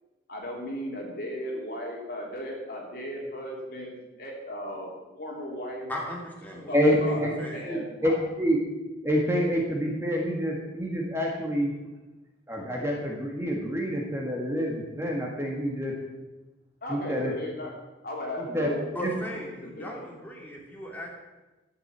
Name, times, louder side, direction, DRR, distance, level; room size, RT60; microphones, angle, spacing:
voice 1, 0.3-5.9 6.5-8.1 16.8-17.7 18.0-18.9 19.3-20.1, left 1 dB, 50° left, -1 dB, 3.0 m, -36 dB
voice 2, 5.9-7.7 18.9-21.1, equal, 10° left, -3 dB, 2.8 m, -37 dB
voice 3, 6.7-8.6 9.0-11.7 12.5-15.9 16.9-17.3 18.4-18.7 19.0-19.1, equal, 15° right, -1 dB, 1.8 m, -27 dB
12.0 x 7.6 x 7.4 m, 1.1 s
head